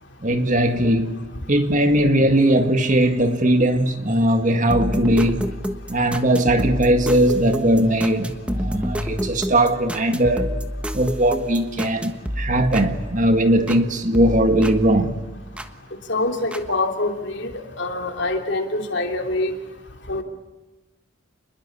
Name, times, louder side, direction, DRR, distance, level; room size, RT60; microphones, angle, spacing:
voice 1, 0.2-1.2 1.5-5.5 5.9-10.5 10.9-15.2, right 1 dB, 40° right, 1.9 m, -19 dB
sound 1, 4.7-13.8 14.1-15.7 16.5-16.6, equal, 5° right, 1.3 m, -29 dB
voice 2, 16.1-19.5 20.1-20.2, left 2 dB, 60° left, 3.2 m, -25 dB
28.0 x 21.5 x 8.4 m
head